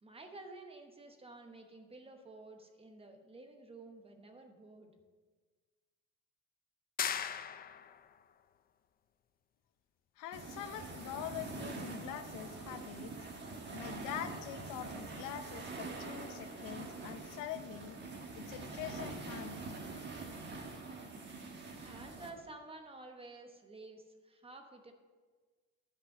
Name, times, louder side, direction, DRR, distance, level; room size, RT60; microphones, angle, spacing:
voice 1, 0.0-4.9 21.8-24.9, right 2 dB, 20° right, 5 dB, 1.1 m, -52 dB
sound 1, 7.0-8.1, left 8 dB, 30° left, 0.4 m, -37 dB
voice 2, 10.2-13.2 13.7-18.0 18.3-19.6, left 10 dB, 85° left, 9 dB, 0.8 m, -44 dB
sound 2, 10.3-22.3, right 3 dB, 35° right, 1.4 m, -45 dB
11.0 x 5.3 x 6.7 m, 1.4 s
cardioid pair, 135°, 32 cm